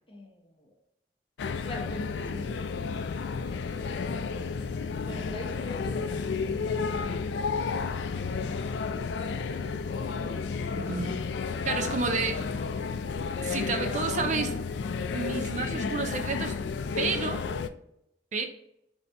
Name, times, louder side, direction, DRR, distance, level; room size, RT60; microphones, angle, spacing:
voice 1, 0.1-0.4 1.6-2.6 5.0-8.4 9.0-9.9 10.2-10.4, left 1 dB, 30° left, 0.9 m, -43 dB
sound 1, 1.4-17.7, left 5 dB, 80° left, 0.3 m, -32 dB
voice 2, 10.8-11.2 11.6-12.5 13.4-14.6 15.1-16.6 17.0-17.4 18.3-18.5, right 4 dB, 40° right, 0.5 m, -30 dB
4.1 x 2.7 x 3.3 m
head